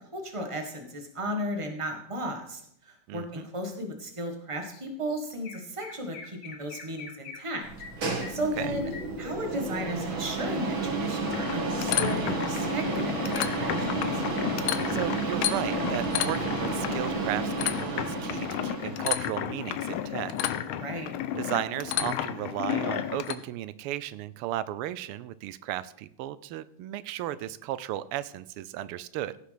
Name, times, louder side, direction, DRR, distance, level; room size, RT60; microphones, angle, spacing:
voice 1, 0.1-7.7 8.3-8.9 9.2-14.2 20.8-21.1, equal, 15° right, 4 dB, 1.5 m, -35 dB
voice 2, 3.1-3.5 8.6-8.7 14.9-20.3 21.4-29.4, right 13 dB, 90° right, 16 dB, 1.5 m, -35 dB
Chirp tweet, 4.7-4.8 5.1-9.7, left 5 dB, 60° left, 2.0 m, -45 dB
sound 1, 7.6-19.2, right 3 dB, 65° right, 2.6 m, -31 dB
sound 2, 11.3-23.3, left 11 dB, 80° left, 1.5 m, -32 dB
15.5 x 6.2 x 5.8 m, 0.71 s
omnidirectional pair, 2.4 m